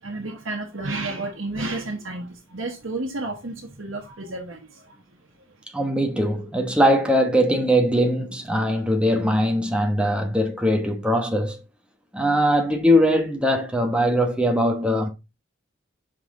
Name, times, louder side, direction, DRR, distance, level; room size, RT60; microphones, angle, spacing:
voice 1, 0.0-5.0, right 2 dB, 80° right, 1.3 m, -31 dB
voice 2, 5.7-11.6 12.1-15.1, equal, 5° right, 1.0 m, -21 dB
5.8 x 5.7 x 3.7 m
head